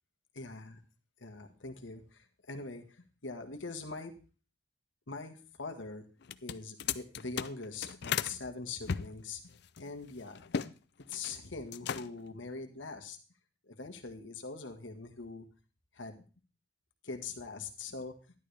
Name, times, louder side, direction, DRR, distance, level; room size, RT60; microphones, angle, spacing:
voice 1, 0.3-0.8 1.2-4.1 5.1-6.1 6.4-9.4 9.8-10.4 11.1-13.2 13.7-15.5 15.9-16.2 17.0-18.1, left 3 dB, 80° left, 6 dB, 1.6 m, -43 dB
sound 1, 6.2-8.4 8.9-10.7 11.0-11.4 11.7-12.3, left 7 dB, 60° left, 0.5 m, -36 dB
12.5 x 11.0 x 3.4 m, 0.36 s
head